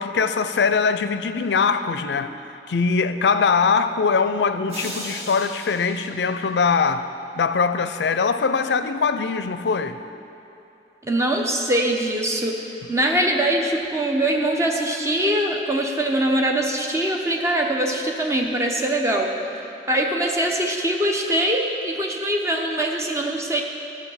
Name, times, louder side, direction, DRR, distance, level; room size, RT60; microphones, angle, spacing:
voice 1, 0.0-2.4 2.7-7.1 7.3-10.0 12.8-12.9, left 5 dB, 70° left, 11 dB, 0.4 m, -22 dB
sound 1, 4.7-7.0, equal, 40° right, 1.9 m, -37 dB
voice 2, 11.0-19.3 19.9-23.6, right 1 dB, 15° right, 1 dB, 0.8 m, -22 dB
11.5 x 6.2 x 5.7 m, 2.8 s
head